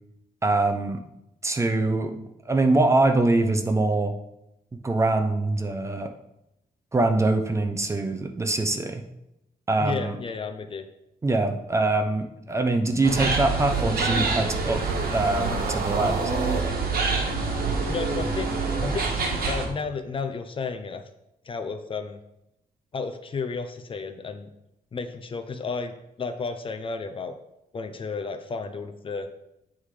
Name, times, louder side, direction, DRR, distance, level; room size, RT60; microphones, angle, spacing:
voice 1, 0.4-1.0 1.4-2.2 2.5-4.1 4.8-6.1 6.9-9.0 9.7-10.2 11.2-14.8 15.1-16.2, right 2 dB, 20° right, 6 dB, 0.6 m, -23 dB
voice 2, 9.8-10.9 17.9-21.0 21.4-22.2 22.9-24.5 24.9-27.3 27.7-29.3, left 4 dB, 35° left, 7 dB, 0.5 m, -32 dB
sound 1, 13.0-19.7, right 4 dB, 75° right, 1.4 m, -26 dB
sound 2, 14.4-18.8, right 3 dB, 55° right, 0.7 m, -34 dB
8.5 x 3.7 x 4.8 m, 0.85 s
wide cardioid pair, 165°, 16 cm